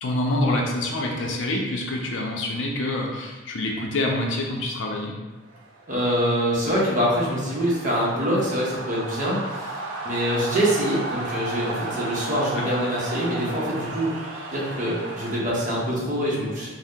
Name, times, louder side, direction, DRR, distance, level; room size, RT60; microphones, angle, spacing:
voice 1, 0.0-5.1 12.6-12.7, left 1 dB, 65° left, 0 dB, 0.5 m, -26 dB
sound 1, 5.5-15.4, right 2 dB, 75° right, 0.5 m, -34 dB
voice 2, 5.9-14.2 14.5-16.7, equal, 40° right, -5 dB, 0.8 m, -25 dB
2.7 x 2.0 x 3.5 m, 1.2 s
head